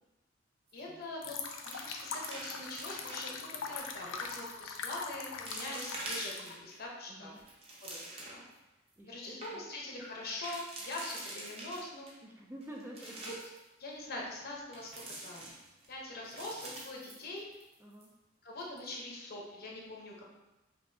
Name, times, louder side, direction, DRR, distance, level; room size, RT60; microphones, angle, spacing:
voice 1, 0.7-1.4 1.6-7.4 7.8-8.4 9.0-12.1 13.2-13.3 13.8-15.5 15.9-17.5 18.4-20.2, left 2 dB, 55° left, -2 dB, 0.9 m, -43 dB
sound 1, 0.7-1.0 1.3-3.4 4.0-4.4 5.0-5.1 5.5-6.8 7.2-8.5 8.9-9.0 9.2-9.5 10.2-12.1 12.6-13.6 14.7-15.9 16.2-17.7 18.0-18.1 18.6-18.9, right 1 dB, 30° right, 0.9 m, -45 dB
sound 2, 1.2-6.6, left 5 dB, 80° left, 0.4 m, -42 dB
voice 2, 7.1-7.4 9.0-9.7 12.2-13.3 17.8-18.1, right 1 dB, 10° right, -1 dB, 0.4 m, -49 dB
5.3 x 2.6 x 2.7 m, 1.0 s
head